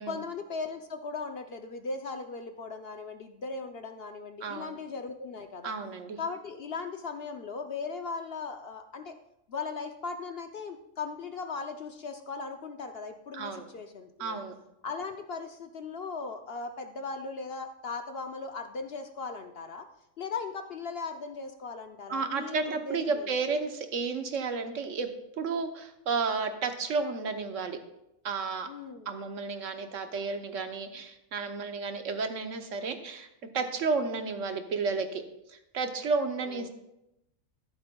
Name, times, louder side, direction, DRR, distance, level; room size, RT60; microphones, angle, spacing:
voice 1, 0.0-5.7 6.2-9.1 9.5-14.4 14.8-19.9 20.2-23.3 28.7-29.1 36.5-36.7, left 4 dB, 55° left, 6 dB, 0.8 m, -38 dB
voice 2, 4.4-4.8 5.6-6.2 13.3-13.7 14.2-14.6 22.1-25.1 25.4-27.8 28.2-28.7 29.1-33.3 33.5-35.2 35.5-36.7, right 4 dB, 65° right, 7 dB, 1.2 m, -32 dB
13.5 x 11.0 x 2.3 m, 0.84 s
omnidirectional pair, 1.4 m